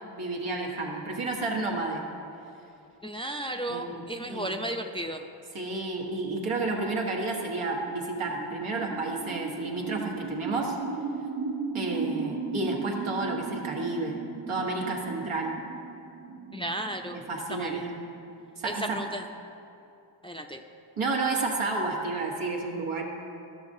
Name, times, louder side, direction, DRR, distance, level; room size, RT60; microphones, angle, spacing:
voice 1, 0.2-2.1 3.7-4.5 5.5-10.8 11.7-14.2 14.5-15.6 17.1-18.0 18.6-19.0 21.0-23.0, right 3 dB, 80° right, 0 dB, 1.2 m, -31 dB
voice 2, 3.0-5.3 16.5-17.2 17.5-17.8 18.6-19.2 20.2-20.6, right 1 dB, 10° left, 3 dB, 0.4 m, -34 dB
sound 1, 6.8-18.4, right 4 dB, 50° right, 0.9 m, -37 dB
12.0 x 6.3 x 2.6 m, 2.7 s
cardioid pair, 45°, 50 cm